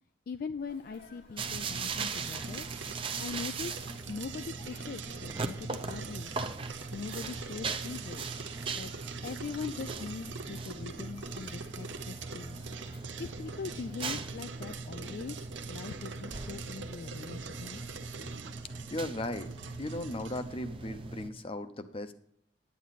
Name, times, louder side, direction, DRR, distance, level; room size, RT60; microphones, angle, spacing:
voice 1, 0.3-2.7 3.2-6.4 6.9-8.3 8.7-12.7 13.2-17.8, left 5 dB, 50° left, 10 dB, 0.3 m, -41 dB
Sneeze, 0.6-14.3, left 1 dB, 75° left, 1.9 m, -59 dB
sound 1, 1.4-21.3, right 4 dB, 30° right, 0.6 m, -40 dB
sound 2, 2.1-20.5, right 6 dB, 90° right, 0.9 m, -45 dB
voice 2, 18.9-19.5 19.8-22.1, left 1 dB, 30° left, 10 dB, 0.7 m, -37 dB
9.3 x 9.2 x 4.1 m, 0.66 s
head